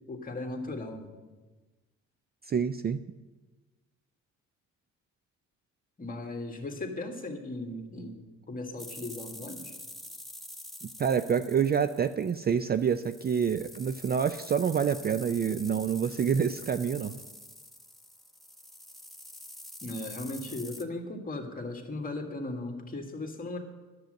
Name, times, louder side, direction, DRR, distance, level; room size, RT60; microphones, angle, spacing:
voice 1, 0.1-1.1 6.0-9.7 19.8-23.6, left 2 dB, 30° left, 3 dB, 1.8 m, -37 dB
voice 2, 2.4-3.0 11.0-17.2, right 7 dB, 35° right, 11 dB, 0.4 m, -27 dB
sound 1, 8.8-20.8, left 1 dB, ahead, 0.9 m, -46 dB
10.5 x 7.8 x 7.7 m, 1.2 s
cardioid pair, 90°, 30 cm